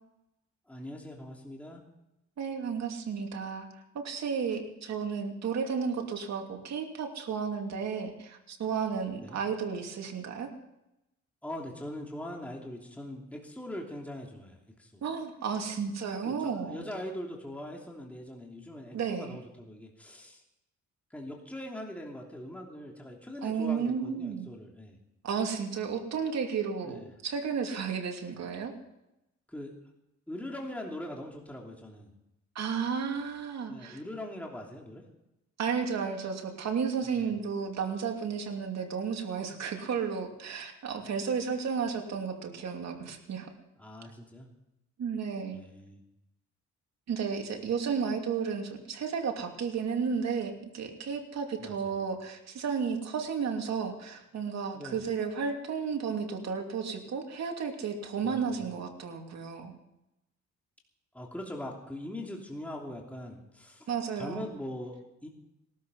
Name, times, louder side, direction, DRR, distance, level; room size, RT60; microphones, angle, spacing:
voice 1, 0.7-1.8 9.1-9.4 11.4-15.0 16.2-20.4 21.1-25.0 26.8-27.1 29.5-29.7 30.3-32.1 33.7-35.0 37.0-37.4 43.8-44.5 45.5-46.0 51.6-52.0 54.7-55.1 58.2-58.6 61.1-63.9 64.2-65.3, left 1 dB, 5° left, -1 dB, 3.0 m, -41 dB
voice 2, 2.4-3.7 3.9-10.5 15.0-16.8 18.9-19.4 23.4-24.5 25.2-28.7 32.5-34.0 35.6-43.5 45.0-45.6 47.1-59.7 63.9-64.5, right 6 dB, 60° right, 3 dB, 2.8 m, -33 dB
19.0 x 13.0 x 5.5 m, 0.90 s
cardioid pair, 90°, 30 cm